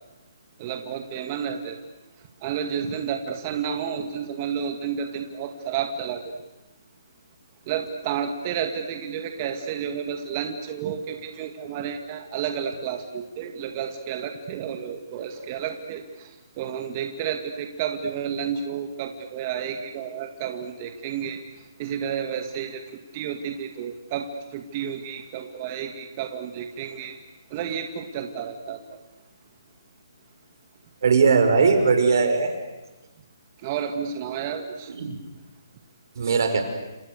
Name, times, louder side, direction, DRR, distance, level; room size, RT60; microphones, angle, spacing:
voice 1, 0.6-1.8 2.4-6.2 7.7-16.3 16.6-21.4 21.8-22.8 23.1-27.2 27.5-28.8 33.6-34.9, right 8 dB, 30° right, 5 dB, 2.1 m, -31 dB
voice 2, 31.0-32.5 35.0-35.2 36.2-36.6, right 5 dB, 55° right, 6 dB, 5.6 m, -19 dB
29.5 x 27.5 x 6.8 m, 1.1 s
hypercardioid pair, 155°, 2 cm